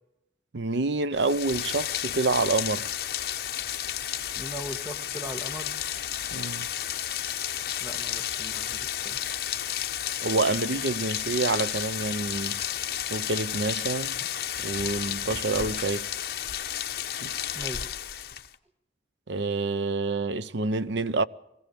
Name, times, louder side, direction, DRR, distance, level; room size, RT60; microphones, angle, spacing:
voice 1, 0.5-2.9 6.3-6.7 10.2-12.6 13.1-14.2 14.6-16.1 17.2-17.3 19.3-21.2, right 3 dB, 75° right, 0.7 m, -27 dB
Rain, 1.1-18.5, left 10 dB, 55° left, 0.9 m, -32 dB
voice 2, 4.4-5.7 7.8-9.2 17.5-17.8, equal, 10° right, 1.4 m, -39 dB
22.0 x 16.0 x 8.4 m
head